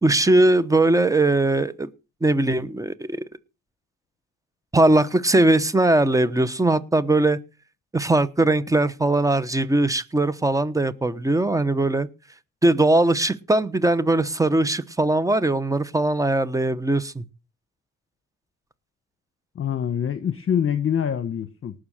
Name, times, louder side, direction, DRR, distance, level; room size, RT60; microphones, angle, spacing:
voice 1, 0.0-1.9 2.2-3.2 4.7-7.4 7.9-12.1 12.6-17.2, right 2 dB, 10° right, 1.1 m, -20 dB
voice 2, 19.5-21.7, left 8 dB, 45° left, 1.1 m, -25 dB
18.5 x 6.4 x 6.5 m
cardioid pair, 90°, 30 cm